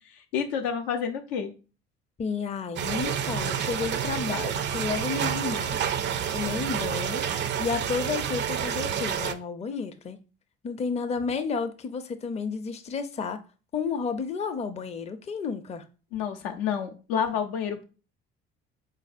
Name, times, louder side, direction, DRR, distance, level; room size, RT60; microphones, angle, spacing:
voice 1, 0.1-1.5 16.1-17.8, left 7 dB, 75° left, 0.6 m, -29 dB
voice 2, 2.2-5.8 6.3-7.2 7.6-10.2 10.6-13.4 13.7-15.8, left 5 dB, 20° left, 0.5 m, -31 dB
sound 1, 2.8-9.3, right 8 dB, 40° right, 0.4 m, -29 dB
3.9 x 2.6 x 2.5 m
hypercardioid pair, 55°, 29 cm